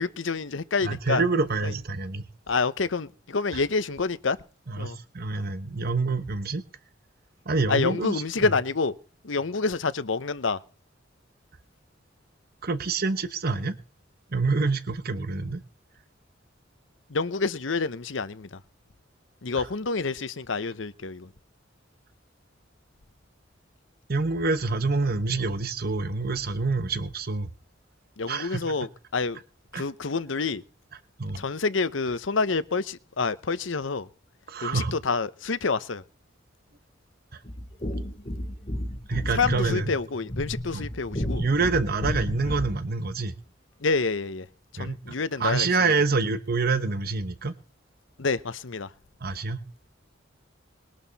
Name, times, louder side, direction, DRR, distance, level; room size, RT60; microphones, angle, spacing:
voice 1, 0.0-1.2 1.6-1.7 2.5-4.4 4.8-5.0 7.7-8.9 9.2-10.6 17.1-18.5 19.4-21.3 28.2-29.4 29.7-30.6 31.4-34.1 34.6-36.0 39.3-41.5 43.8-44.5 44.8-45.7 48.2-48.9, left 4 dB, 80° left, 0.9 m, -28 dB
voice 2, 0.8-2.2 3.5-3.6 4.7-6.6 7.5-8.2 12.6-13.7 14.3-15.6 19.6-19.7 24.1-27.5 28.3-28.7 29.7-29.8 31.2-31.4 34.5-34.9 39.1-39.9 40.7-40.8 41.4-43.3 44.8-45.0 45.4-47.5 49.2-49.6, right 3 dB, 55° right, 1.1 m, -26 dB
sound 1, 37.4-42.8, equal, 30° left, 4.0 m, -32 dB
21.0 x 11.5 x 4.2 m
head